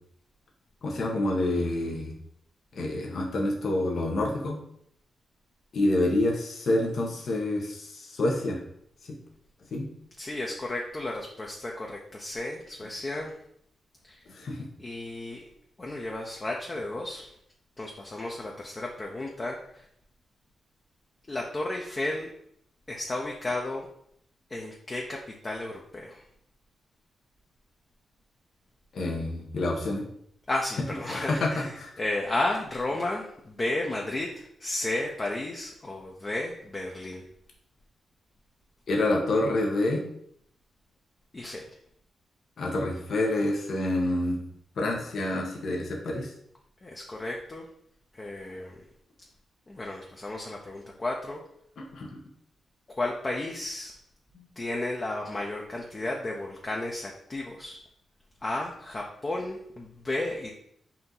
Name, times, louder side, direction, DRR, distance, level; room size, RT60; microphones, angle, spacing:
voice 1, 0.8-2.1 2.7-4.6 5.7-8.6 9.7-9.9 14.3-14.7 28.9-30.0 31.1-31.9 38.9-40.0 42.6-44.4 44.8-46.3 51.9-52.2 54.3-54.5, left 1 dB, 60° left, -1 dB, 1.0 m, -27 dB
voice 2, 10.2-13.3 14.1-14.2 14.8-15.5 15.8-17.3 17.8-19.8 21.3-22.3 22.9-23.9 24.5-26.2 30.5-37.2 41.3-41.6 46.8-47.6 48.1-48.8 49.7-51.4 52.9-53.9 54.6-57.8 58.4-60.5, left 2 dB, 30° left, -1 dB, 0.6 m, -33 dB
4.3 x 2.7 x 3.8 m, 0.70 s
cardioid pair, 70°, 0 cm